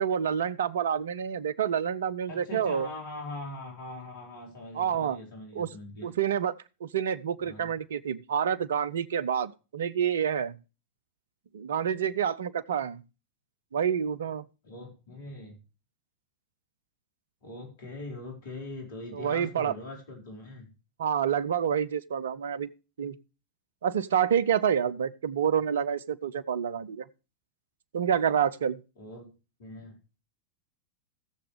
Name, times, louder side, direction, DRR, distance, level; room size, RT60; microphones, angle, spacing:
voice 1, 0.0-2.9 4.7-5.2 5.5-5.7 6.0-6.6 6.8-10.6 11.5-13.0 13.7-14.4 19.1-19.7 21.0-22.7 23.0-23.2 23.8-27.1 27.9-28.8, right 8 dB, 65° right, 0.7 m, -28 dB
voice 2, 2.3-6.1 7.4-7.7 14.6-15.6 17.4-20.7 29.0-29.3 29.6-30.0, left 2 dB, 55° left, 4.6 m, -42 dB
18.0 x 7.1 x 3.3 m
figure-of-eight pair, 90°, 0 cm